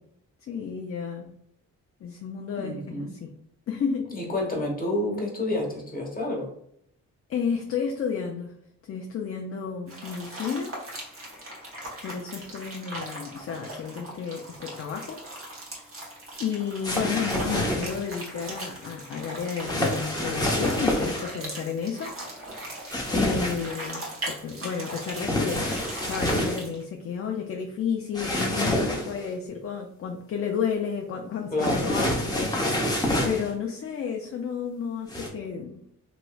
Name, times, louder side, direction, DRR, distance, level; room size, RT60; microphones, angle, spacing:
voice 1, 0.5-1.3 2.0-3.3 3.7-4.1 7.3-8.5 8.8-10.7 12.0-15.2 16.4-22.1 23.1-25.7 26.0-32.9 33.2-35.8, left 6 dB, 45° left, 2 dB, 0.4 m, -32 dB
voice 2, 2.6-3.1 4.1-6.5 31.5-31.9, left 1 dB, 25° left, -1 dB, 1.2 m, -29 dB
sound 1, 9.9-26.8, right 1 dB, 45° right, 1.2 m, -39 dB
sound 2, 16.8-18.0 19.6-21.3 22.9-23.7 25.1-26.6 28.1-29.3 31.6-33.5 35.1-35.3, left 1 dB, 10° left, 0.8 m, -27 dB
3.0 x 2.9 x 2.3 m, 0.73 s
cardioid pair, 95°, 31 cm